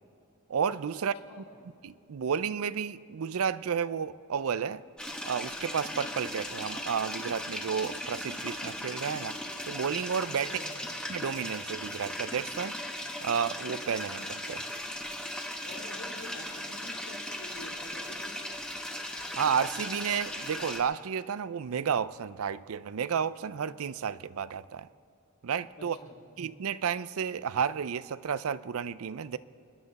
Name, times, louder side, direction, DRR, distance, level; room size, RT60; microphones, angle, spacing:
voice 1, 0.5-1.1 1.8-4.8 5.2-9.4 9.7-10.5 11.1-12.8 13.2-14.7 19.4-24.9 25.4-26.0 26.4-29.4, right 7 dB, 70° right, 0.5 m, -32 dB
sound 1, 5.0-20.8, left 1 dB, 5° left, 1.2 m, -38 dB
voice 2, 10.4-10.9 15.6-18.3 25.8-26.1, left 1 dB, 80° left, 3.5 m, -47 dB
27.0 x 11.0 x 4.1 m
head